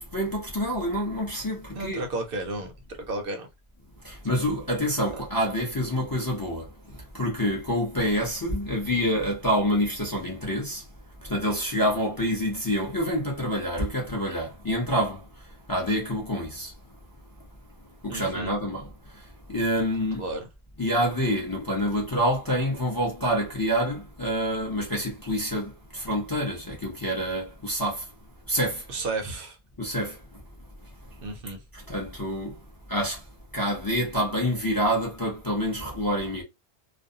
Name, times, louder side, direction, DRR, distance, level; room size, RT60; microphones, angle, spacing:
voice 1, 0.0-2.1 4.0-10.9 11.2-16.8 18.0-20.2 20.8-28.1 28.5-28.9 29.8-30.4 30.8-31.2 31.7-32.6 32.9-33.3 33.5-36.4, equal, 25° left, 0.5 m, -27 dB
voice 2, 1.7-2.7 3.1-3.5 18.1-18.5 20.2-20.5 28.9-29.6 31.2-31.6, right 2 dB, 65° right, 0.7 m, -32 dB
2.4 x 2.0 x 2.6 m
omnidirectional pair, 1.1 m